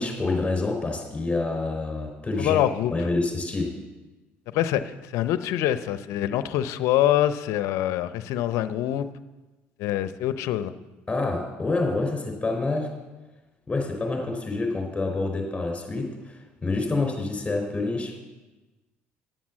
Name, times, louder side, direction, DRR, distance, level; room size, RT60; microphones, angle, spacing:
voice 1, 0.0-2.6 2.9-3.7 11.1-12.9 13.7-18.2, left 3 dB, 20° left, 2 dB, 4.2 m, -27 dB
voice 2, 2.4-2.9 4.5-9.1 9.8-10.7, left 12 dB, 70° left, 12 dB, 0.7 m, -25 dB
10.5 x 7.4 x 7.3 m, 1.1 s
supercardioid pair, 75°, 5 cm